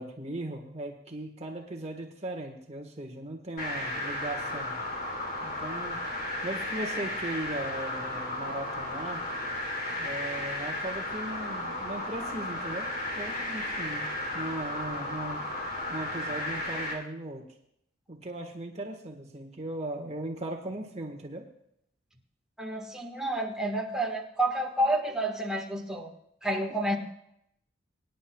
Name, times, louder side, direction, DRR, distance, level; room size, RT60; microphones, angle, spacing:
voice 1, 0.0-4.7 5.4-6.0 6.4-9.2 10.0-15.5 15.9-17.4 18.1-21.4, right 1 dB, 35° right, 2 dB, 1.4 m, -38 dB
sound 1, 3.6-16.9, left 1 dB, 50° left, 2.9 m, -34 dB
voice 2, 22.6-26.1 26.4-27.0, right 1 dB, 5° right, 1 dB, 1.5 m, -29 dB
23.5 x 10.5 x 2.3 m, 0.75 s
head